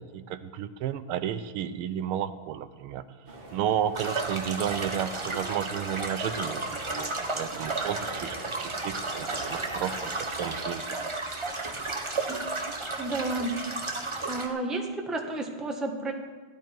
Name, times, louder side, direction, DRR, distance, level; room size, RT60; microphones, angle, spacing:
voice 1, 0.0-3.1 3.5-11.0, right 10 dB, 85° right, 12 dB, 1.6 m, -32 dB
sound 1, 3.3-10.6, right 2 dB, 25° right, 1.7 m, -43 dB
sound 2, 3.9-14.5, right 3 dB, 50° right, 0.3 m, -33 dB
voice 2, 13.0-13.5 14.3-16.1, right 2 dB, ahead, 2 dB, 0.9 m, -31 dB
15.0 x 12.5 x 4.5 m, 1.4 s
omnidirectional pair, 2.3 m